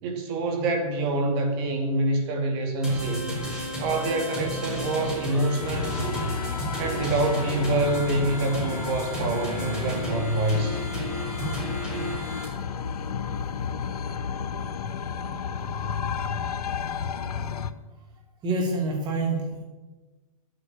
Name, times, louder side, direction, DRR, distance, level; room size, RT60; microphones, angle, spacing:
voice 1, 0.0-3.3 3.8-6.3 6.8-10.8 15.3-15.4, right 2 dB, 45° right, 4 dB, 2.9 m, -26 dB
sound 1, 2.8-12.4, equal, 5° right, 6.2 m, -33 dB
sound 2, 5.6-17.7, left 6 dB, 90° left, 1.0 m, -32 dB
voice 2, 18.4-19.6, right 2 dB, 25° right, 0 dB, 2.3 m, -27 dB
12.0 x 8.1 x 9.8 m, 1.3 s
hypercardioid pair, 140°, 19 cm